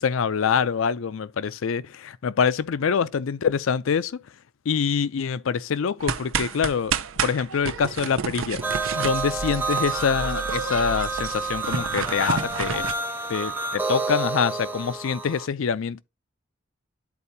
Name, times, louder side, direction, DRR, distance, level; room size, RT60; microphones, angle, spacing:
voice 1, 0.0-4.2 4.7-7.0 7.2-8.6 8.9-12.9 13.3-16.0, left 6 dB, 80° left, 0.4 m, -25 dB
sound 1, 6.0-12.9, right 6 dB, 85° right, 0.5 m, -30 dB
sound 2, 8.6-15.5, right 3 dB, 10° right, 0.4 m, -29 dB
11.5 x 4.4 x 2.7 m
head